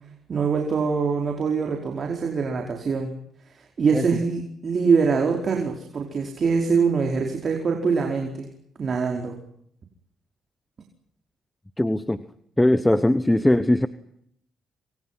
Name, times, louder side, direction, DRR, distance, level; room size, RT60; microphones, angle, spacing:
voice 1, 0.3-3.1 3.8-8.5 8.8-9.4, right 5 dB, 45° right, 2 dB, 4.8 m, -23 dB
voice 2, 11.8-12.2 12.6-13.9, left 1 dB, 10° left, 13 dB, 1.2 m, -20 dB
27.0 x 26.5 x 5.9 m, 0.69 s
cardioid pair, 90°, 0 cm